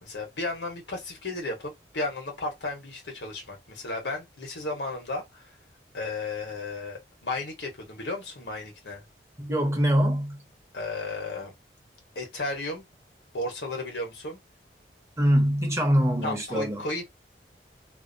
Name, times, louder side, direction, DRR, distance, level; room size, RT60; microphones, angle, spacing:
voice 1, 0.0-5.5 5.9-9.0 10.7-11.5 12.1-12.8 13.3-14.4 16.2-17.0, left 2 dB, 80° left, 1.1 m, -34 dB
voice 2, 9.4-10.4 15.2-16.8, equal, 15° right, 0.7 m, -23 dB
2.7 x 2.0 x 2.5 m
head